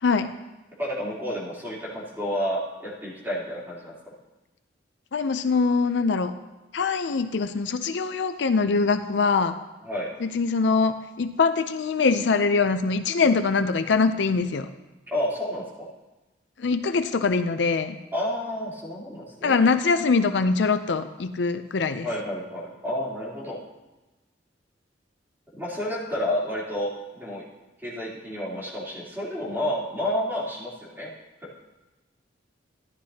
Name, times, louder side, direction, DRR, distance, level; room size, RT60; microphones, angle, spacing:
voice 1, 0.8-3.9 9.9-10.1 15.1-15.6 18.1-19.6 22.0-23.6 25.6-27.4 27.8-31.1, left 1 dB, 10° right, -7 dB, 3.3 m, -30 dB
voice 2, 5.1-6.3 6.7-9.6 10.2-14.7 16.6-18.0 19.4-22.1, left 4 dB, 65° left, 9 dB, 0.5 m, -23 dB
14.0 x 11.5 x 2.8 m, 1.1 s
head